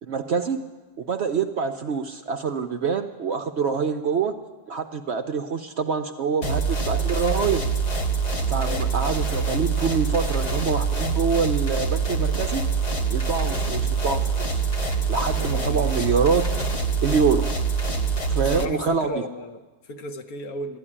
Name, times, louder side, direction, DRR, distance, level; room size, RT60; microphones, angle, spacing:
voice 1, 0.0-0.6 1.1-4.3 4.7-7.6 8.5-12.6 13.1-14.6 15.1-16.4 17.0-17.5 18.3-19.2, right 5 dB, 60° right, 6 dB, 0.8 m, -25 dB
sound 1, 6.4-18.7, right 4 dB, 40° left, 0.7 m, -25 dB
voice 2, 8.5-9.2 15.4-15.9 18.4-20.8, left 1 dB, 70° left, 8 dB, 1.3 m, -35 dB
13.0 x 11.0 x 9.9 m, 1.3 s
omnidirectional pair, 1.6 m